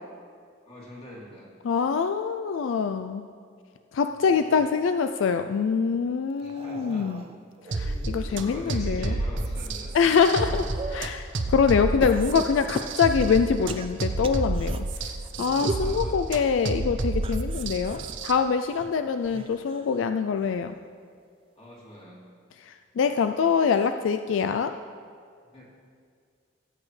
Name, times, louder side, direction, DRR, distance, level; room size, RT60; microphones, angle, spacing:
voice 1, 0.6-1.5 4.2-4.7 6.4-7.3 8.3-9.9 15.6-16.2 21.5-22.2 25.5-25.7, left 1 dB, 30° left, -6 dB, 2.8 m, -44 dB
voice 2, 1.6-3.3 3.9-7.2 7.7-9.1 9.9-20.8 22.6-24.8, left 6 dB, 75° left, 8 dB, 0.3 m, -24 dB
sound 1, 6.4-8.7 9.2-11.2 12.0-14.8 15.3-15.9 17.1-20.0 20.4-20.8 22.0-22.1, right 3 dB, 25° right, 0.3 m, -40 dB
sound 2, 7.7-18.3, right 2 dB, 65° right, 0.7 m, -30 dB
17.5 x 8.5 x 3.2 m, 2.2 s
head